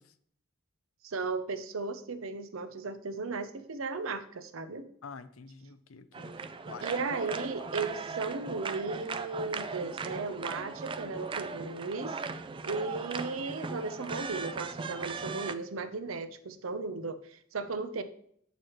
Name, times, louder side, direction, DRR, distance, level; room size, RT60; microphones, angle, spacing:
voice 1, 1.0-4.9 6.8-12.2 12.6-18.0, right 4 dB, 80° right, 10 dB, 0.7 m, -36 dB
voice 2, 5.0-6.8 8.4-8.8, left 5 dB, 90° left, 12 dB, 0.6 m, -48 dB
sound 1, 6.1-15.5, right 4 dB, 25° right, 0.4 m, -38 dB
7.7 x 6.7 x 3.1 m, 0.64 s
head